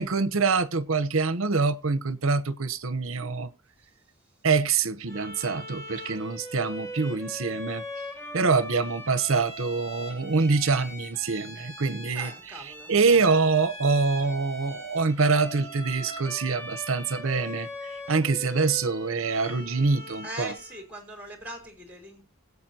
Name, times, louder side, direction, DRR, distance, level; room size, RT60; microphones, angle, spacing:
voice 1, 0.0-3.5 4.4-7.8 8.3-20.5, right 4 dB, 65° right, 0.9 m, -25 dB
Bowed string instrument, 5.1-20.9, equal, 15° left, 4.1 m, -40 dB
voice 2, 12.1-12.9 20.2-22.2, right 1 dB, 5° right, 3.7 m, -41 dB
21.0 x 8.4 x 2.8 m
head